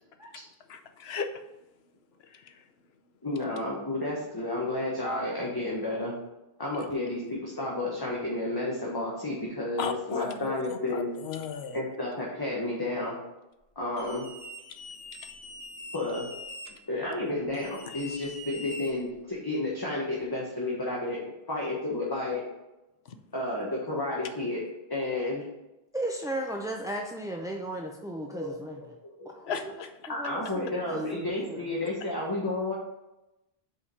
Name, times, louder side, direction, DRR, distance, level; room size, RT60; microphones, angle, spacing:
voice 1, 0.7-1.3 2.3-2.5 6.7-6.9 9.8-11.8 29.5-29.9, left 6 dB, 80° left, 7 dB, 1.0 m, -35 dB
voice 2, 3.2-6.1 6.6-11.1 11.7-13.2 13.7-14.3 15.9-16.3 16.9-22.4 23.3-24.6 24.9-25.4 28.3-28.5 28.8-28.9 29.2-29.3 30.1-32.7, left 2 dB, 20° left, -5 dB, 1.2 m, -31 dB
sound 1, 14.0-16.7 17.5-19.3, left 1 dB, 55° left, 1.7 m, -43 dB
voice 3, 25.9-28.8 29.2-29.7 30.2-31.7, right 1 dB, 5° right, 1 dB, 0.3 m, -35 dB
5.4 x 4.9 x 5.4 m, 0.96 s
omnidirectional pair, 1.0 m